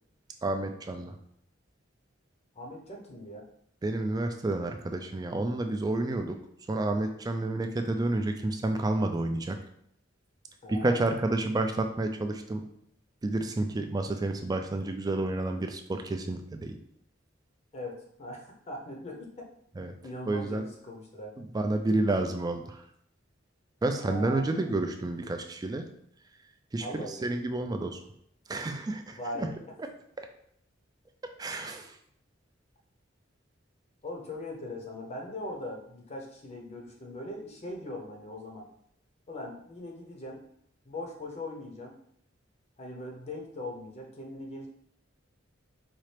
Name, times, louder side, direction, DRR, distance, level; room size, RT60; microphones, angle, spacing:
voice 1, 0.4-1.1 3.8-6.4 6.7-9.6 10.7-12.6 13.2-16.8 19.8-19.9 20.3-20.6 21.4-22.8 23.8-25.9 26.7-28.0 28.5-29.5 30.2-30.3 31.4-31.9, right 2 dB, 20° right, 6 dB, 0.3 m, -30 dB
voice 2, 2.5-3.4 10.6-11.1 17.7-19.5 20.0-21.3 24.0-24.8 26.8-27.2 29.2-29.7 34.0-38.7 39.3-40.4 40.8-42.0 42.8-44.7, left 1 dB, 35° left, 0 dB, 0.7 m, -40 dB
4.1 x 2.5 x 3.2 m, 0.70 s
head